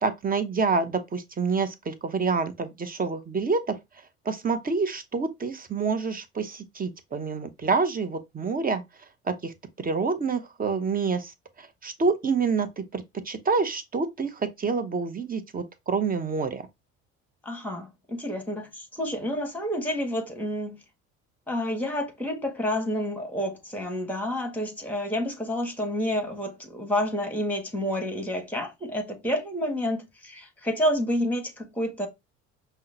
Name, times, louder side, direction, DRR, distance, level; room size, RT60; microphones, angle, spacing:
voice 1, 0.0-3.7 4.2-8.8 9.3-16.6, right 4 dB, 25° right, 0.8 m, -27 dB
voice 2, 17.4-20.8 21.5-32.1, equal, 5° left, 1.5 m, -29 dB
5.5 x 2.2 x 2.7 m
hypercardioid pair, 70°, 35 cm